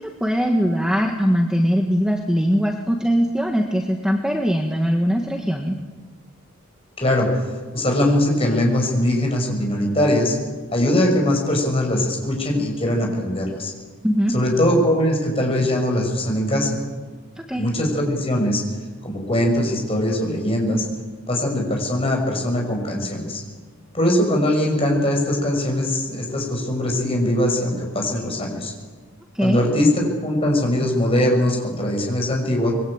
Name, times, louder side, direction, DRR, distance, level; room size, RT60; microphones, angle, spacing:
voice 1, 0.2-5.7 14.0-14.3 17.4-17.7 29.3-29.6, equal, 5° right, 2 dB, 1.5 m, -21 dB
voice 2, 7.0-7.3 7.7-10.4 10.7-13.7 14.3-16.8 17.6-18.6 19.0-20.8 21.3-23.4 23.9-28.7 29.4-32.7, left 1 dB, 25° left, 1 dB, 6.3 m, -21 dB
26.0 x 22.0 x 8.8 m, 1.4 s
head